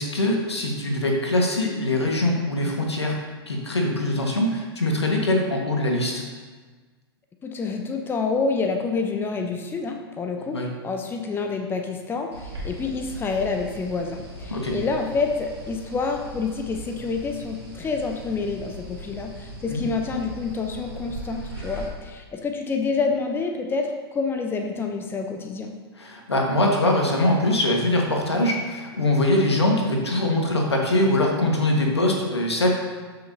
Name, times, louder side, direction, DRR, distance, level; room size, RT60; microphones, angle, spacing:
voice 1, 0.0-3.2 3.5-6.2 10.4-10.7 14.5-14.8 19.7-19.8 26.0-32.7, left 1 dB, 80° left, 0 dB, 1.7 m, -22 dB
voice 2, 7.4-25.7, left 4 dB, 15° left, 4 dB, 0.8 m, -28 dB
sound 1, 12.3-21.9, right 1 dB, 80° right, 2.8 m, -39 dB
13.0 x 6.2 x 2.9 m, 1.4 s
figure-of-eight pair, 100°, 14 cm